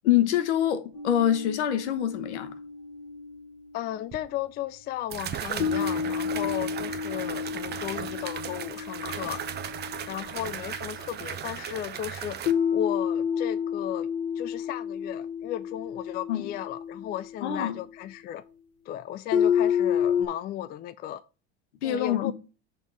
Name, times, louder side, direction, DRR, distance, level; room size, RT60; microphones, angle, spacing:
voice 1, 0.0-2.5 16.3-16.5 17.4-17.8 21.8-22.3, left 11 dB, 80° left, 1.1 m, -25 dB
sound 1, 0.9-4.2 5.6-11.0 12.5-17.9 19.3-20.3, left 7 dB, 45° left, 1.6 m, -30 dB
voice 2, 3.7-9.4 10.1-12.4 12.7-14.1 14.4-18.4 18.9-21.2 21.8-22.3, left 12 dB, 30° left, 0.3 m, -35 dB
sound 2, 4.1-4.2 5.1-12.5, right 9 dB, 30° right, 0.7 m, -36 dB
6.5 x 3.6 x 5.9 m
hypercardioid pair, 95°, 34 cm